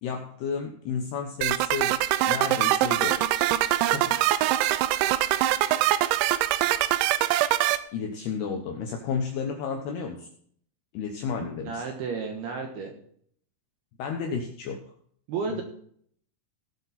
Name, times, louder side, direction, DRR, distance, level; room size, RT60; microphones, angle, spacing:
voice 1, 0.0-2.0 2.3-3.2 3.9-4.4 7.9-10.3 10.9-11.8 14.0-14.8 15.5-15.6, left 6 dB, 75° left, 3 dB, 2.4 m, -32 dB
sound 1, 1.4-7.8, right 14 dB, 85° right, 2.6 m, -23 dB
voice 2, 11.6-12.9 15.3-15.6, right 5 dB, 70° right, 2 dB, 2.6 m, -32 dB
18.0 x 7.8 x 4.2 m, 0.62 s
omnidirectional pair, 5.9 m